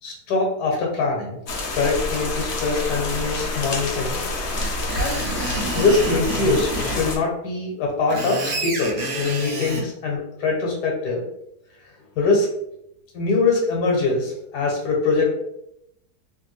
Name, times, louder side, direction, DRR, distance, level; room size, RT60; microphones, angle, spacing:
voice 1, 0.0-1.4 1.7-4.2 4.6-5.2 5.7-11.2 12.2-12.5 13.1-15.3, left 3 dB, 90° left, -1 dB, 1.3 m, -23 dB
sound 1, 1.5-7.2, left 2 dB, 60° left, 0.8 m, -27 dB
Screech, 4.5-7.0 7.9-9.8, right 2 dB, 70° right, 1.3 m, -29 dB
3.2 x 2.3 x 3.0 m, 0.81 s
omnidirectional pair, 1.7 m